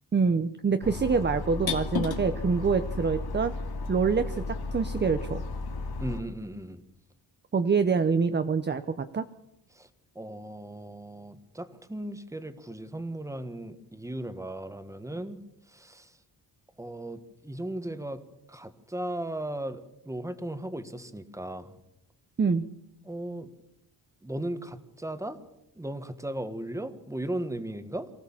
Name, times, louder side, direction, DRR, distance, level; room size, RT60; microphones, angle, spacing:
voice 1, 0.1-3.5 3.9-5.4 7.5-9.2 22.4-22.7, right 5 dB, 25° right, 10 dB, 0.7 m, -26 dB
sound 1, 0.8-6.2, left 4 dB, 60° left, 2.4 m, -33 dB
voice 2, 6.0-6.8 9.7-9.9 10.1-15.4 15.7-16.2 16.8-18.2 18.5-21.8 23.0-23.5 24.2-25.4 25.7-28.1, right 1 dB, 5° right, 10 dB, 1.4 m, -36 dB
23.5 x 15.5 x 7.2 m, 0.87 s
wide cardioid pair, 145°, 42 cm